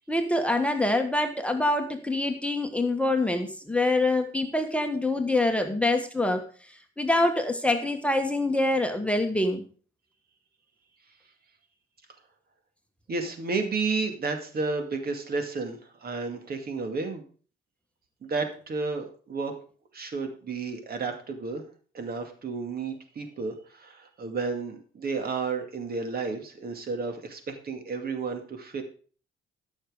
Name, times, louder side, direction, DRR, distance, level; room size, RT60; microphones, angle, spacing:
voice 1, 0.1-9.6, left 2 dB, 5° left, 5 dB, 1.4 m, -25 dB
voice 2, 13.1-17.2 18.2-19.5 19.9-21.7 21.9-28.8, right 4 dB, 50° right, 6 dB, 2.3 m, -32 dB
13.0 x 6.5 x 5.0 m, 0.41 s
cardioid pair, 90°, 20 cm